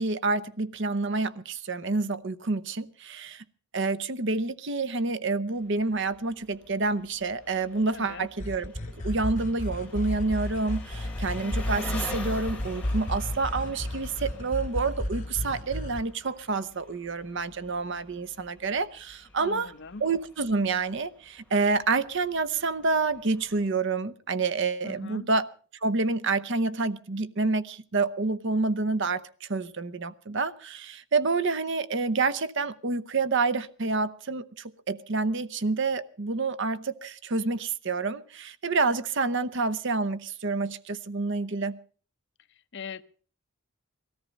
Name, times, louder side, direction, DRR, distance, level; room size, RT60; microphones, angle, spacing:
voice 1, 0.0-3.4 3.7-8.7 9.0-19.7 20.0-25.5 25.8-41.8, right 3 dB, 55° right, 0.8 m, -28 dB
Engine, 5.6-23.7, left 1 dB, 5° left, 3.4 m, -44 dB
voice 2, 7.9-8.3 19.4-20.0 24.8-25.3 42.7-43.0, left 5 dB, 55° left, 0.7 m, -40 dB
sound 1, 8.4-16.0, left 1 dB, 35° left, 3.0 m, -33 dB
18.5 x 14.0 x 5.3 m
head